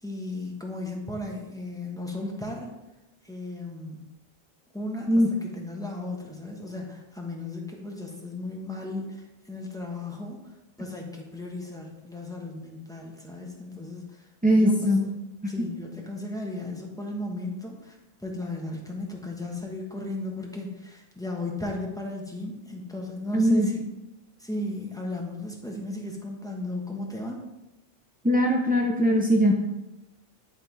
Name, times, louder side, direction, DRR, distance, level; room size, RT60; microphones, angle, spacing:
voice 1, 0.0-2.7 3.2-4.0 4.7-10.4 10.8-14.3 14.5-14.9 15.4-23.8 24.4-27.4, left 1 dB, 5° left, -1 dB, 1.2 m, -35 dB
voice 2, 14.4-15.1 23.3-23.7 28.2-29.5, equal, 15° right, -1 dB, 0.4 m, -20 dB
11.0 x 3.6 x 4.6 m, 1.0 s
omnidirectional pair, 1.1 m